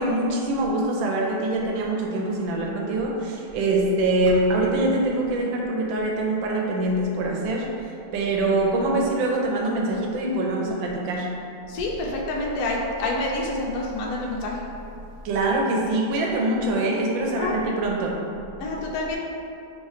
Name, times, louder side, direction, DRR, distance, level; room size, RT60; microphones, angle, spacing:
voice 1, 0.0-7.7 8.1-11.3 15.2-18.1, right 2 dB, 90° right, -1 dB, 1.4 m, -24 dB
voice 2, 11.7-14.6 17.4-17.6 18.6-19.2, left 2 dB, 75° left, -2 dB, 0.9 m, -27 dB
3.2 x 2.4 x 4.1 m, 2.6 s
omnidirectional pair, 2.0 m